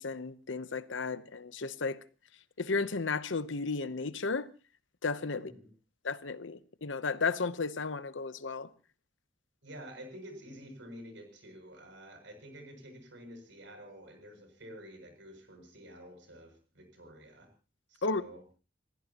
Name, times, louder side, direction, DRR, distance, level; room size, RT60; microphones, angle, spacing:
voice 1, 0.0-2.0 2.6-4.5 5.0-5.5 6.0-8.7 18.0-18.2, left 4 dB, 80° left, 0.9 m, -33 dB
voice 2, 5.3-5.7 9.6-17.5 17.9-18.4, equal, 70° right, 7.1 m, -49 dB
29.5 x 15.5 x 3.0 m
head